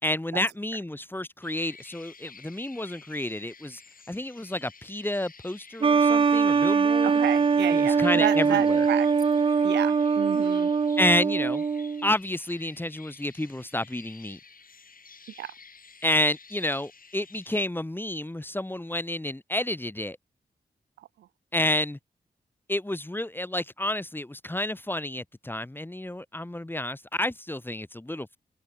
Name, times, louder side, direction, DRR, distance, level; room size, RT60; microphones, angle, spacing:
voice 1, 0.0-3.8 4.1-7.2 7.7-8.9 11.0-11.6 12.0-14.4 16.0-20.2 21.5-22.0 22.7-28.4, left 1 dB, 10° left, 0.9 m, -30 dB
sound 1, 1.4-17.7, left 5 dB, 55° left, 2.3 m, -51 dB
sound 2, 5.8-12.1, right 5 dB, 30° right, 0.4 m, -22 dB
voice 2, 7.0-9.1 9.6-10.7 15.4-15.5 21.0-21.3, right 13 dB, 90° right, 0.4 m, -31 dB
open air
supercardioid pair, 40°, 18 cm